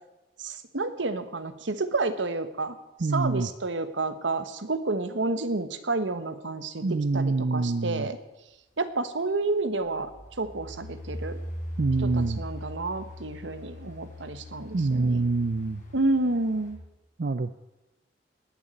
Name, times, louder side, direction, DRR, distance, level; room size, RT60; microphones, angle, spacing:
voice 1, 0.4-2.7 3.1-8.2 8.8-10.1 10.4-11.4 12.0-15.2 15.9-16.8, right 2 dB, 80° right, 11 dB, 1.2 m, -30 dB
voice 2, 3.0-3.5 6.8-8.1 11.8-12.4 14.7-15.8 17.2-17.6, right 3 dB, 50° right, 12 dB, 0.5 m, -26 dB
sound 1, 9.2-9.5 9.8-16.7, left 1 dB, 40° left, 4.4 m, -40 dB
19.0 x 7.2 x 8.9 m, 0.98 s
head